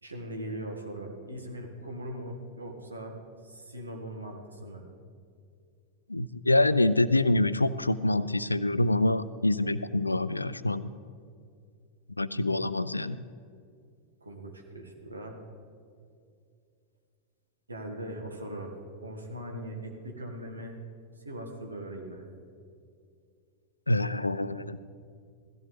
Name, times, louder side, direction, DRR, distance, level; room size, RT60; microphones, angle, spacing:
voice 1, 0.0-3.1 3.4-4.9 14.2-15.4 17.7-18.8 19.0-20.8 21.3-22.3, right 1 dB, 80° right, 2 dB, 1.7 m, -40 dB
voice 2, 6.1-10.9 12.2-13.2 23.9-24.8, left 2 dB, 85° left, 16 dB, 0.4 m, -26 dB
17.0 x 14.5 x 3.3 m, 2.3 s
figure-of-eight pair, 90°, 0 cm